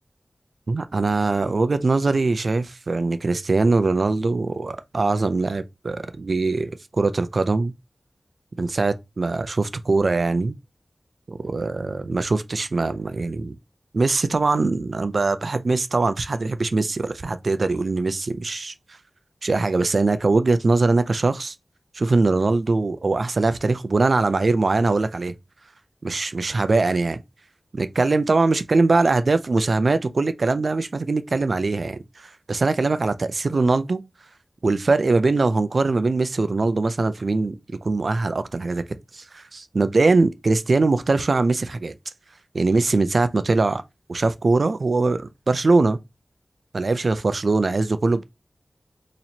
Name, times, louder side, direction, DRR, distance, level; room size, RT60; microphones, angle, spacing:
voice 1, 0.7-7.7 8.6-10.6 11.3-13.6 13.9-18.7 19.4-21.5 21.9-25.3 26.0-27.2 27.7-34.0 34.6-37.6 37.8-41.9 42.5-43.8 44.1-46.0 46.7-48.2, right 3 dB, 65° right, 0.4 m, -22 dB
4.2 x 3.0 x 2.7 m
wide cardioid pair, 75°, 0 cm